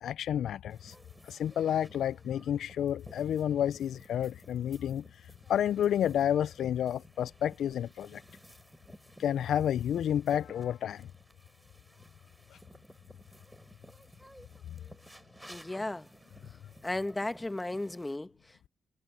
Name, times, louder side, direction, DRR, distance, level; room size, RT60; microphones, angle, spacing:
voice 1, 0.0-0.9 1.3-5.0 5.5-8.2 9.2-11.1 12.5-12.6, left 10 dB, 75° left, 0.4 m, -30 dB
sound 1, 0.7-18.2, right 1 dB, 10° right, 5.3 m, -55 dB
voice 2, 15.5-16.1 16.5-16.6 16.8-18.7, left 2 dB, 20° left, 1.9 m, -35 dB
hypercardioid pair, 40°, 0 cm